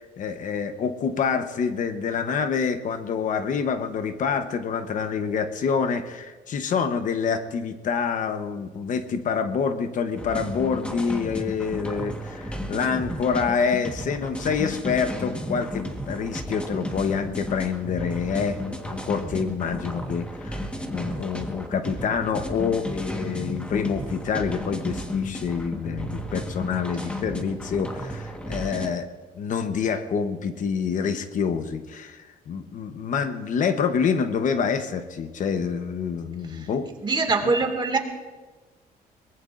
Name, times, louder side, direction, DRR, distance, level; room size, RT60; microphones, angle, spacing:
voice 1, 0.0-18.6 18.9-20.6 20.9-29.1 29.3-36.9, left 6 dB, 55° left, 9 dB, 1.0 m, -27 dB
sound 1, 10.2-28.9, left 1 dB, 5° left, 1.4 m, -33 dB
voice 2, 37.0-38.0, right 3 dB, 30° right, 4 dB, 2.1 m, -23 dB
23.0 x 19.5 x 2.6 m, 1.3 s
cardioid pair, 125°, 16 cm